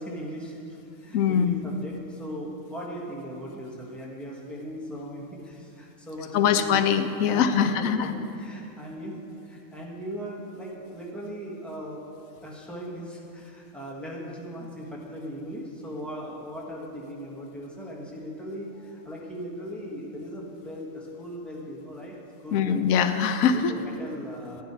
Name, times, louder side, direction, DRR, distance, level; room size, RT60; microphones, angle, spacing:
voice 1, 0.0-6.8 7.2-12.0 12.4-22.2 22.4-22.8 23.5-24.6, equal, ahead, -4 dB, 1.4 m, -38 dB
voice 2, 1.1-1.6 6.3-8.1 22.5-23.7, left 7 dB, 85° left, 9 dB, 1.0 m, -22 dB
10.5 x 9.8 x 4.4 m, 2.6 s
omnidirectional pair, 1.4 m